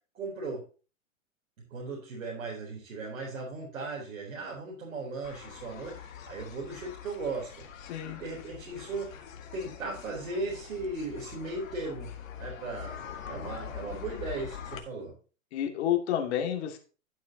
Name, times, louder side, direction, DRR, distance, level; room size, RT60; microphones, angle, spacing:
voice 1, 0.1-0.6 1.7-7.5 8.0-9.1 9.5-13.0 13.3-15.1, right 3 dB, 75° right, -3 dB, 4.1 m, -37 dB
sound 1, 5.2-14.8, left 8 dB, 75° left, 2.0 m, -44 dB
voice 2, 7.9-8.2 15.5-16.8, left 10 dB, 55° left, 2 dB, 2.4 m, -29 dB
12.5 x 8.3 x 2.9 m, 0.36 s
hypercardioid pair, 125°, 40 cm